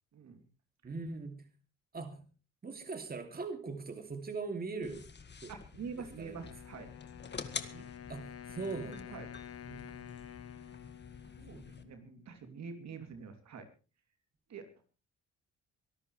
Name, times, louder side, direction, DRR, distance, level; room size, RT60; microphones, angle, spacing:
voice 1, 0.1-0.4 5.5-6.9 7.7-7.9 9.1-9.3 11.3-13.7 14.5-14.9, right 5 dB, 65° right, 6 dB, 3.1 m, -46 dB
voice 2, 0.8-1.5 1.9-2.2 2.6-5.1 5.4-5.5 5.9-6.5 8.1-9.2 9.7-10.2 11.5-11.7, right 4 dB, 30° right, 6 dB, 2.7 m, -41 dB
sound 1, 4.8-11.8, left 5 dB, 35° left, 1.9 m, -48 dB
Wind instrument woodwind instrument, 6.4-12.4, left 10 dB, 50° left, 1.1 m, -49 dB
24.0 x 13.0 x 3.3 m, 0.35 s
cardioid pair, 90°, 30 cm